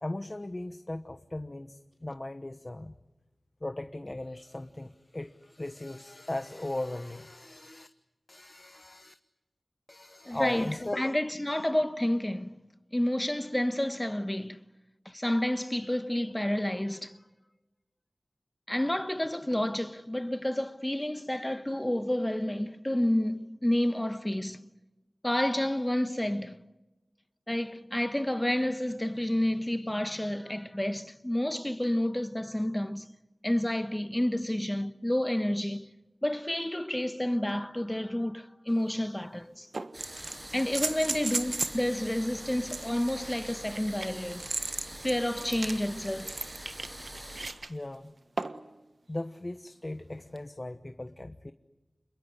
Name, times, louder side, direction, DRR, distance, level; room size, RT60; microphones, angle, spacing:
voice 1, 0.0-3.0 3.6-7.9 8.3-9.1 9.9-11.1 47.7-48.1 49.1-51.5, left 1 dB, 35° left, 1.1 m, -38 dB
voice 2, 10.2-10.7 11.0-12.6 12.9-14.6 15.0-17.2 18.7-24.6 25.2-26.6 27.5-33.0 33.4-35.9 36.2-39.7 40.5-44.5 45.0-46.4, left 1 dB, 15° left, 1.3 m, -30 dB
sound 1, 38.7-38.8 39.7-41.8 42.7-47.7 48.4-48.7 50.4-50.5, right 3 dB, 65° right, 1.3 m, -35 dB
sound 2, 39.9-47.5, right 1 dB, 40° right, 7.7 m, -44 dB
27.5 x 21.5 x 10.0 m
wide cardioid pair, 45°, 0 cm